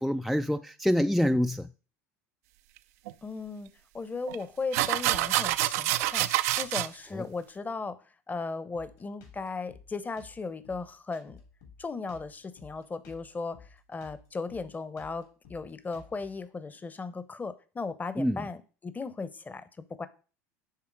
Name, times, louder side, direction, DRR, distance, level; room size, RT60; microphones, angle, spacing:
voice 1, 0.0-1.7 7.1-7.3 18.2-18.5, equal, ahead, 0.3 m, -26 dB
sound 1, 3.1-3.2 4.3-4.4 4.7-6.9, right 15 dB, 70° right, 0.4 m, -27 dB
voice 2, 3.2-6.3 6.6-8.0 8.3-11.4 11.8-20.1, left 4 dB, 20° left, 0.9 m, -37 dB
Drum kit, 8.7-16.4, left 5 dB, 70° left, 3.2 m, -54 dB
10.5 x 3.6 x 4.7 m
hypercardioid pair, 80°, 8 cm